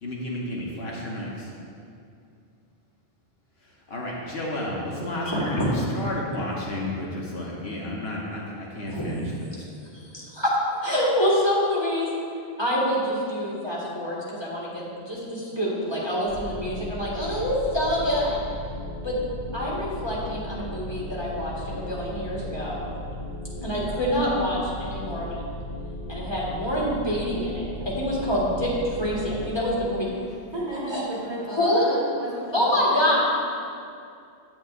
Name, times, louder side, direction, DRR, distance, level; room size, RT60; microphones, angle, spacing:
voice 1, 0.0-1.5 3.6-9.7, left 1 dB, 70° left, -3 dB, 1.3 m, -32 dB
voice 2, 5.2-5.7 8.9-9.1 9.9-12.1 12.6-18.4 19.0-19.2 19.5-22.8 23.6-25.4 26.1-30.1 30.9-31.0 31.5-32.0 32.5-33.2, equal, 25° left, -7 dB, 1.8 m, -26 dB
sound 1, 16.3-29.5, left 1 dB, 55° left, 1.5 m, -36 dB
voice 3, 30.5-33.2, right 1 dB, 25° right, -7 dB, 1.5 m, -34 dB
9.4 x 7.9 x 2.5 m, 2.4 s
omnidirectional pair, 1.1 m